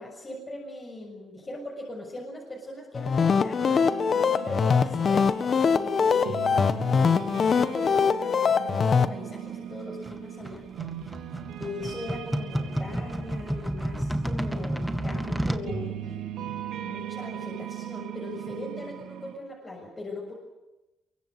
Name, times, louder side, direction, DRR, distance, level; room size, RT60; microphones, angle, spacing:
voice 1, 0.0-3.6 4.1-6.5 6.9-10.7 11.6-20.3, left 2 dB, 30° left, -1 dB, 6.9 m, -40 dB
sound 1, 2.9-9.1, left 6 dB, 45° left, 1.3 m, -23 dB
sound 2, 3.6-19.3, right 10 dB, 85° right, 2.9 m, -39 dB
sound 3, 10.0-15.7, right 1 dB, 5° right, 2.2 m, -31 dB
24.0 x 23.5 x 8.0 m, 1.0 s
cardioid pair, 90°, 0 cm